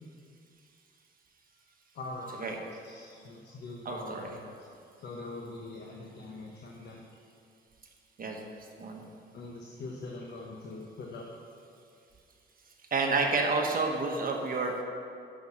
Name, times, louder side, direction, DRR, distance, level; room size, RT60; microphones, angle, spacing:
voice 1, 1.9-2.6 2.8-4.5 5.0-7.0 9.3-11.3, left 2 dB, 60° left, 0 dB, 1.1 m, -42 dB
voice 2, 3.8-4.3 8.2-8.4 8.8-9.0 12.9-14.7, right 3 dB, 45° right, 2 dB, 1.3 m, -29 dB
9.1 x 6.4 x 5.7 m, 2.4 s
cardioid pair, 90°, 20 cm